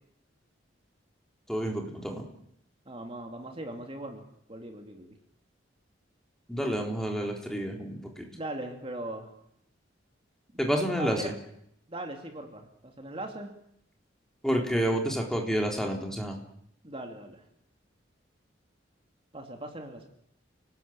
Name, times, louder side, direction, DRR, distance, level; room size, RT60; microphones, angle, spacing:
voice 1, 1.5-2.2 6.5-8.3 10.6-11.3 14.4-16.4, equal, 5° left, 1 dB, 3.9 m, -29 dB
voice 2, 2.9-4.2 4.5-5.1 6.7-6.9 8.3-9.3 10.5-11.3 11.9-13.5 16.8-17.4 19.3-20.1, right 1 dB, 30° right, 4 dB, 2.8 m, -40 dB
29.5 x 19.5 x 8.8 m, 0.74 s
head